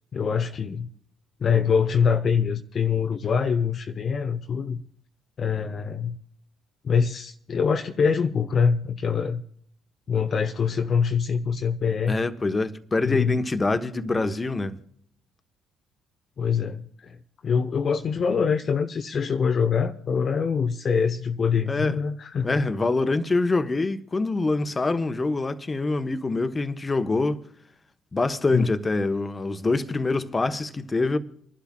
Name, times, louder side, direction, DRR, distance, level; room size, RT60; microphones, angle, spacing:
voice 1, 0.1-0.9 1.4-4.8 5.4-6.2 6.8-9.4 10.1-12.2 13.0-13.4 16.4-22.6 28.5-28.7, left 6 dB, 45° left, 0.8 m, -24 dB
voice 2, 12.1-14.7 21.7-22.0 22.4-27.4 28.1-31.2, left 3 dB, 25° left, 1.2 m, -25 dB
29.5 x 11.5 x 2.4 m
hypercardioid pair, 50°, 0 cm